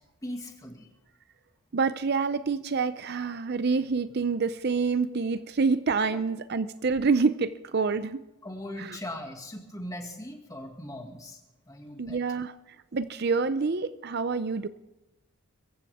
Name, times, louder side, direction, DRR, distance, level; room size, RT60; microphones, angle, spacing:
voice 1, 0.2-0.9 6.0-6.2 8.4-11.4 11.7-12.2, left 1 dB, 15° left, 3 dB, 2.2 m, -39 dB
voice 2, 1.7-8.2 8.8-9.0 12.0-12.5 12.9-14.7, right 4 dB, 50° right, 13 dB, 0.6 m, -27 dB
24.0 x 15.0 x 3.6 m, 0.97 s
head